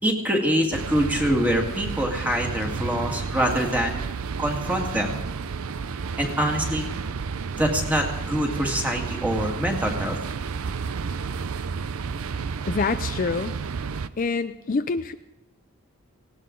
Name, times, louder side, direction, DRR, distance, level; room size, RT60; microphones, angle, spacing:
voice 1, 0.0-4.0 4.4-5.2 6.2-6.9 7.5-10.2, equal, 5° right, 1 dB, 2.0 m, -25 dB
sound 1, 0.7-14.1, right 5 dB, 75° right, 0.5 m, -31 dB
voice 2, 12.7-13.6 14.2-15.1, left 4 dB, 40° left, 9 dB, 0.4 m, -26 dB
19.0 x 17.5 x 3.9 m, 0.95 s
head